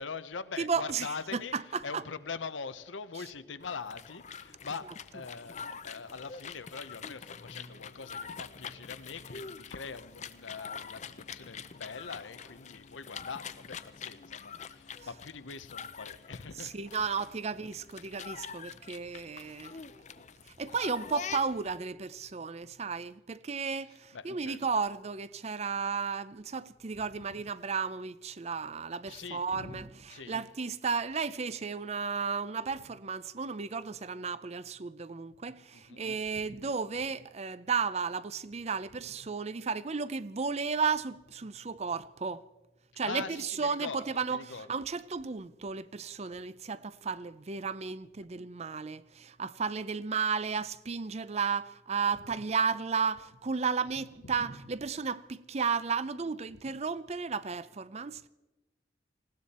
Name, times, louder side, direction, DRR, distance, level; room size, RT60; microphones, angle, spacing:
voice 1, 0.0-16.8 17.1-17.2 24.1-24.6 29.1-30.4 35.7-36.0 36.4-36.5 43.0-44.9 53.8-54.4 56.5-56.6, left 5 dB, 85° left, 0.8 m, -43 dB
voice 2, 0.6-2.0 16.6-19.8 20.6-42.4 43.0-58.3, right 5 dB, 35° right, 0.5 m, -34 dB
sound 1, 3.6-21.8, left 6 dB, 40° left, 0.6 m, -45 dB
19.5 x 17.0 x 4.3 m
head